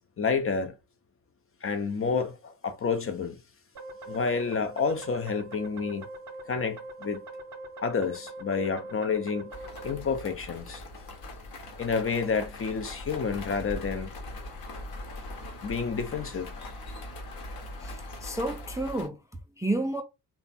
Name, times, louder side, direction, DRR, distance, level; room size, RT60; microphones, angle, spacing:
voice 1, 0.2-0.7 1.6-3.4 4.1-6.1 6.5-7.2 7.8-9.5 9.8-10.8 11.8-14.1 15.6-16.5, left 5 dB, 30° left, 0.7 m, -29 dB
sound 1, 3.7-10.0, right 2 dB, 35° right, 0.9 m, -42 dB
sound 2, 9.5-19.1, left 1 dB, 50° left, 1.2 m, -41 dB
voice 2, 17.8-19.2 19.6-20.0, right 1 dB, 5° right, 0.6 m, -30 dB
3.3 x 2.3 x 4.0 m
hypercardioid pair, 45°, 48 cm